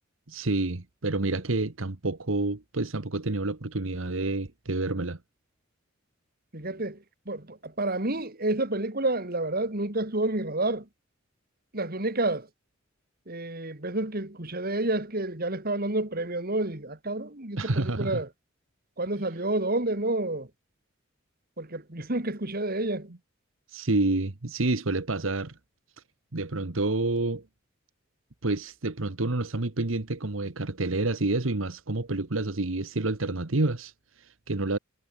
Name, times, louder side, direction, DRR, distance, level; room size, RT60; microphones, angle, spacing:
voice 1, 0.3-5.2 17.6-18.2 23.7-25.5 26.3-27.4 28.4-34.8, right 2 dB, 80° right, 1.4 m, -28 dB
voice 2, 6.5-7.0 7.3-10.8 11.7-12.5 13.3-18.3 19.0-20.5 21.6-23.1, right 2 dB, 50° right, 3.2 m, -29 dB
head